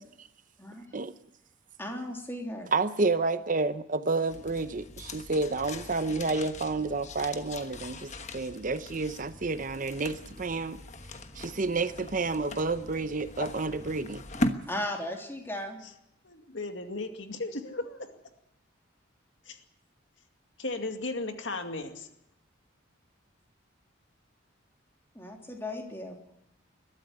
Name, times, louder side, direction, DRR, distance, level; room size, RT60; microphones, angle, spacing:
voice 1, 1.8-2.7 14.7-15.8 25.1-26.2, left 1 dB, 10° left, 3.3 m, -36 dB
voice 2, 2.7-10.8 11.3-14.2, right 3 dB, 40° right, 0.7 m, -30 dB
sound 1, 4.3-14.5, left 1 dB, 35° left, 1.3 m, -39 dB
voice 3, 16.2-18.1 19.5-19.6 20.6-22.1, left 2 dB, 65° left, 2.3 m, -36 dB
21.5 x 13.5 x 9.7 m
head